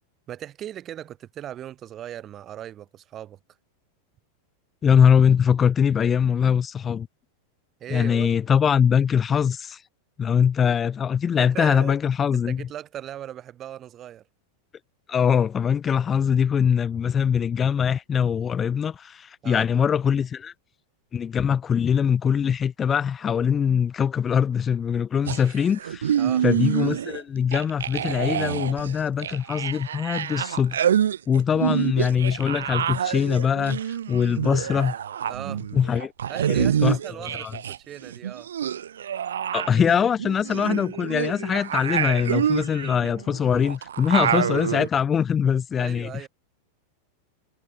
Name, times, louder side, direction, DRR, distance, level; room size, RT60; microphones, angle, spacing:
voice 1, 0.3-3.4 7.8-8.3 10.6-10.8 11.4-12.0 12.3-14.3 19.4-19.7 26.1-26.4 35.3-35.6 36.3-38.5 45.8-46.3, right 11 dB, 30° right, 1.7 m, -38 dB
voice 2, 4.8-7.1 7.9-9.8 10.2-12.6 15.1-20.5 21.1-26.2 26.4-30.9 31.3-34.9 35.7-36.1 36.5-37.0 37.4-37.5 39.5-46.1, left 7 dB, 20° left, 0.7 m, -22 dB
sound 1, 25.3-27.2 27.5-37.8 38.0-44.9, right 9 dB, 65° right, 0.8 m, -27 dB
figure-of-eight pair, 90°, 0 cm